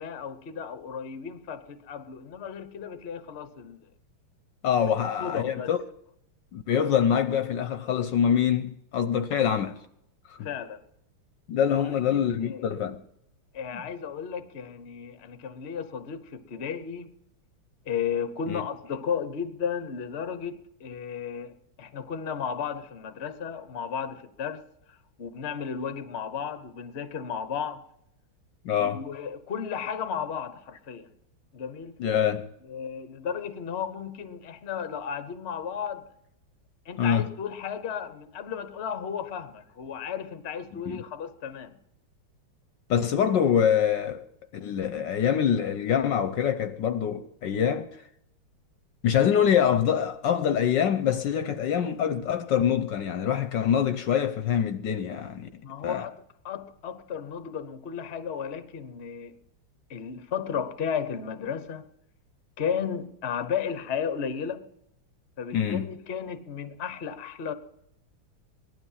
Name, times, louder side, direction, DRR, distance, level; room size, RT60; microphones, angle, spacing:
voice 1, 0.0-3.8 5.2-5.7 10.4-10.8 11.9-12.7 13.5-17.1 17.8-24.6 24.9-27.8 28.8-31.1 31.5-32.0 32.6-36.1 36.8-41.8 55.6-56.1 56.4-59.4 59.9-61.8 62.6-64.6 65.4-67.5, left 7 dB, 40° left, 0.9 m, -34 dB
voice 2, 4.6-5.8 6.5-9.8 10.4-10.5 11.5-13.0 13.7-13.8 18.5-18.6 28.6-29.0 32.0-32.5 37.0-37.3 40.9-41.0 42.9-44.2 44.5-47.9 49.0-55.5 55.8-56.1 65.5-65.9, left 8 dB, 70° left, 1.3 m, -25 dB
18.0 x 12.5 x 5.7 m
omnidirectional pair, 2.3 m